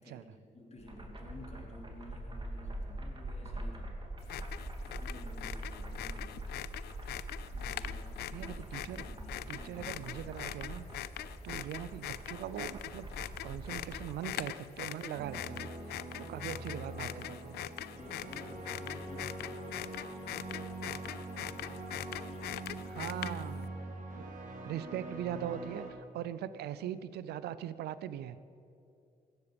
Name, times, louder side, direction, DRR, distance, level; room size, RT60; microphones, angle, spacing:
voice 1, 0.0-4.0 4.8-6.5 7.5-10.6 16.4-16.6 17.9-23.7, left 2 dB, 40° left, 0 dB, 3.0 m, -54 dB
sound 1, 0.8-14.1, right 1 dB, 30° right, 2.7 m, -43 dB
sound 2, 4.2-23.7, left 13 dB, 80° left, 0.4 m, -43 dB
voice 2, 8.3-9.0 9.5-10.8 11.4-15.7 16.2-17.6 22.9-23.7 24.1-24.3 24.7-28.4, right 11 dB, 80° right, 15 dB, 0.5 m, -41 dB
sound 3, 15.1-25.9, right 2 dB, 50° right, 2.9 m, -43 dB
15.5 x 11.0 x 5.2 m, 2.7 s
supercardioid pair, 50°, 17 cm